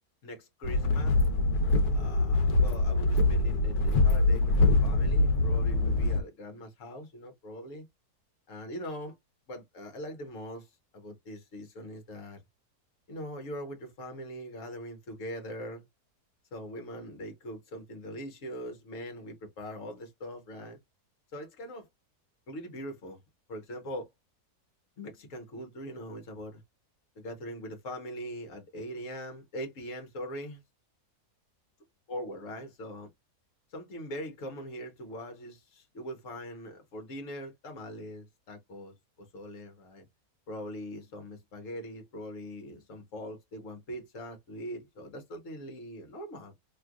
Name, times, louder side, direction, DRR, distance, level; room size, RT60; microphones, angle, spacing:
voice 1, 0.2-1.2 1.9-7.8 8.5-9.2 9.5-12.4 13.1-15.8 16.5-20.8 21.3-21.9 22.5-23.2 23.5-24.1 25.0-26.6 27.2-30.6 32.1-33.1 33.7-38.9 39.3-40.1 40.5-46.5, equal, 55° left, 1.4 m, -41 dB
sound 1, 0.6-6.2, left 2 dB, 90° left, 1.2 m, -24 dB
3.2 x 3.0 x 2.3 m
omnidirectional pair, 1.6 m